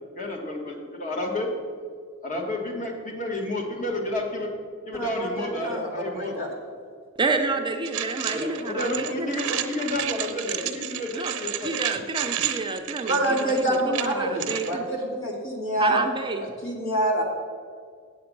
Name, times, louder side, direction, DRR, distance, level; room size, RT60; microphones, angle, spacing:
voice 1, 0.2-1.5 2.2-4.5 4.9-6.3 8.3-11.7 13.9-14.3, left 1 dB, 35° left, 1 dB, 1.5 m, -30 dB
voice 2, 4.9-6.5 13.1-16.0 16.6-17.2, right 1 dB, 65° left, -2 dB, 2.3 m, -26 dB
voice 3, 7.2-9.4 11.1-14.8 15.8-16.5, right 3 dB, 20° right, 4 dB, 0.6 m, -29 dB
sound 1, 7.8-14.7, right 12 dB, 90° right, 0.8 m, -31 dB
8.1 x 7.9 x 5.3 m, 2.1 s
head